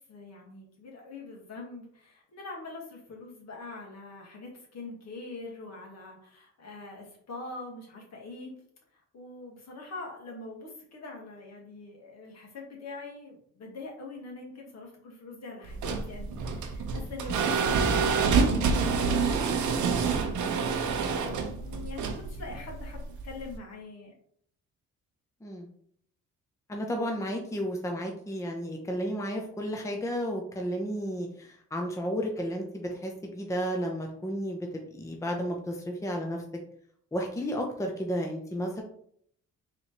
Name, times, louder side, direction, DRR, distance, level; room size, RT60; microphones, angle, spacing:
voice 1, 0.1-8.5 8.9-24.1, left 3 dB, 60° left, 0 dB, 1.5 m, -43 dB
sound 1, 15.7-23.6, right 5 dB, 75° right, 0.7 m, -27 dB
voice 2, 26.7-36.4 37.1-38.8, equal, 10° left, 2 dB, 0.7 m, -32 dB
4.1 x 3.1 x 2.9 m, 0.64 s
cardioid pair, 90°, 30 cm